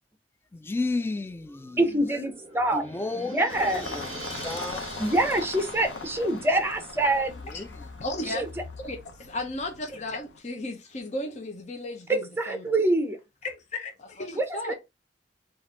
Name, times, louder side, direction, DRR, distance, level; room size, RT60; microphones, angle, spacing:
voice 1, 0.5-1.8 2.7-4.1 4.4-5.1 7.5-7.9, left 3 dB, 15° left, 0.3 m, -33 dB
sound 1, 1.3-8.3 8.6-8.7, right 2 dB, 35° right, 1.3 m, -44 dB
voice 2, 1.8-2.8 3.1-3.8 5.0-7.4 8.3-8.5 12.1-13.2 14.3-14.7, right 1 dB, 15° right, 0.8 m, -25 dB
sound 2, 3.5-10.4, left 4 dB, 85° left, 0.6 m, -40 dB
voice 3, 8.0-8.5 8.8-12.2 12.5-12.8 13.4-14.7, left 2 dB, 40° left, 0.7 m, -35 dB
4.1 x 2.6 x 4.4 m
head